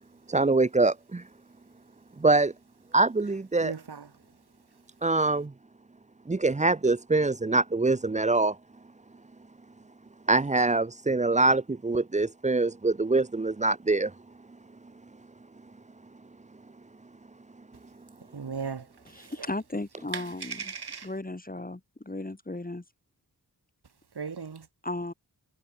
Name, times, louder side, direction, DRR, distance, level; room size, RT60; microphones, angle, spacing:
voice 1, 0.3-1.2 2.2-2.5 2.9-3.7 5.0-5.5 6.3-8.5 10.3-14.1, right 3 dB, 20° right, 0.6 m, -24 dB
voice 2, 3.6-4.1 18.3-18.9 19.2-19.3 20.1-21.1 24.2-24.7, right 5 dB, 70° right, 2.6 m, -37 dB
voice 3, 19.0-20.7 21.0-22.8 24.8-25.1, left 2 dB, 20° left, 2.8 m, -35 dB
wide cardioid pair, 65°, 40 cm